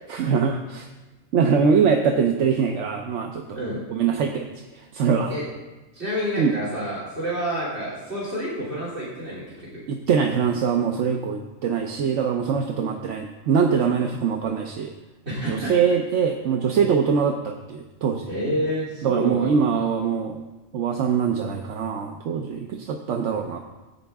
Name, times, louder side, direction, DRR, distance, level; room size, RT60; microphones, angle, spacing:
voice 1, 0.1-0.9 1.3-3.6 3.9-4.5 4.7-5.3 6.4-6.5 9.9-14.9 15.5-18.3 19.0-20.4 20.7-23.6, right 6 dB, 75° right, 3 dB, 1.1 m, -23 dB
voice 2, 5.9-9.8 15.2-15.7 18.3-19.8, equal, 60° right, -9 dB, 3.0 m, -29 dB
15.0 x 8.7 x 3.5 m, 1.1 s
omnidirectional pair, 1.3 m